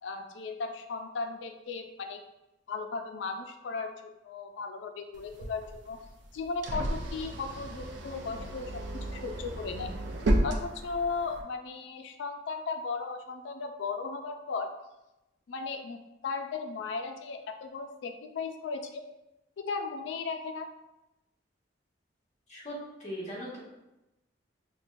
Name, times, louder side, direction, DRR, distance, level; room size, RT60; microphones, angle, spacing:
voice 1, 0.0-2.2 2.7-6.0 6.3-9.9 10.4-14.7 15.5-19.0 19.6-20.7, left 4 dB, 80° left, 5 dB, 0.4 m, -36 dB
sound 1, 5.1-11.4, right 1 dB, 75° right, 0.5 m, -33 dB
voice 2, 23.0-23.6, left 1 dB, 40° left, -6 dB, 1.1 m, -39 dB
5.8 x 2.1 x 2.5 m, 0.94 s
head